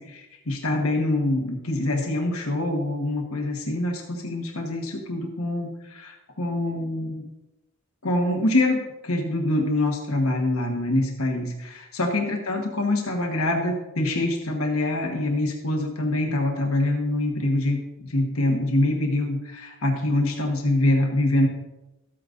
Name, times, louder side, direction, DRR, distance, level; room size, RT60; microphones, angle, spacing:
voice 1, 0.0-7.3 8.0-21.5, left 1 dB, 90° left, 2 dB, 1.3 m, -25 dB
13.5 x 8.6 x 2.6 m, 0.96 s
head